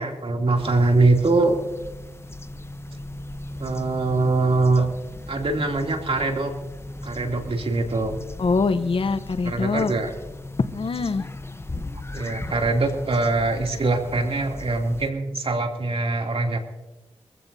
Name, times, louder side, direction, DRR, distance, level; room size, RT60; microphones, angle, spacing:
voice 1, 0.0-1.6 3.6-4.9 5.3-6.5 7.0-8.2 9.4-10.1 12.1-16.6, right 3 dB, 60° right, 2 dB, 2.8 m, -23 dB
sound 1, 0.5-15.1, left 2 dB, 25° left, 0.9 m, -37 dB
voice 2, 8.4-9.9 10.7-11.3, left 4 dB, 55° left, 11 dB, 0.8 m, -24 dB
23.0 x 15.5 x 2.7 m, 1.0 s
cardioid pair, 50°, 11 cm